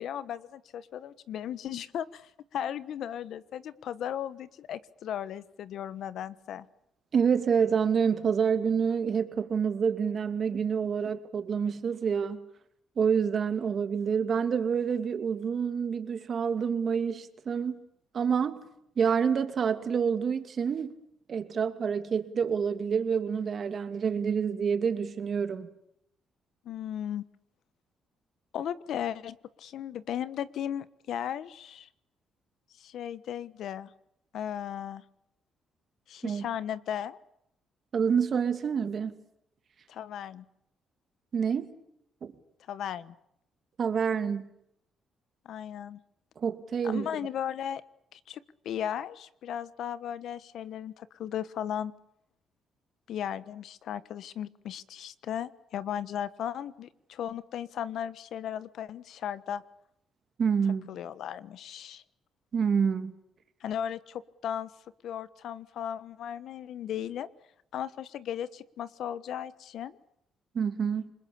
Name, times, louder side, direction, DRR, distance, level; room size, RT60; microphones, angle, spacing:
voice 1, 0.0-6.7 26.6-27.2 28.5-31.9 32.8-33.9 34.3-35.0 36.1-37.2 39.9-40.4 42.7-43.1 45.4-46.0 46.8-47.8 48.1-51.9 53.1-59.6 60.9-62.0 63.6-64.7 65.0-67.3 67.7-70.0, left 9 dB, 75° left, 16 dB, 1.2 m, -36 dB
voice 2, 7.1-12.4 13.0-17.8 18.1-18.6 19.0-20.9 21.3-25.7 36.2-36.5 37.9-39.1 41.3-41.7 42.2-42.3 43.8-44.5 46.4-47.1 60.4-60.9 62.5-63.1 70.5-71.1, right 6 dB, 50° right, 9 dB, 2.6 m, -27 dB
28.0 x 21.0 x 8.7 m, 0.75 s
cardioid pair, 90°, 0 cm